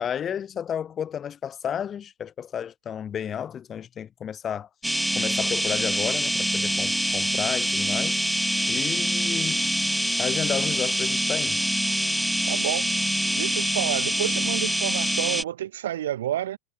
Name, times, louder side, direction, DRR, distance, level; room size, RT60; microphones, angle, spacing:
voice 1, 0.0-4.7 5.1-8.2 8.7-9.9 10.2-11.6, left 8 dB, 25° left, 2.5 m, -32 dB
sound 1, 4.8-15.4, equal, ahead, 3.4 m, -25 dB
voice 2, 12.5-12.9 13.4-16.6, right 12 dB, 60° right, 8.0 m, -29 dB
figure-of-eight pair, 90°, 0 cm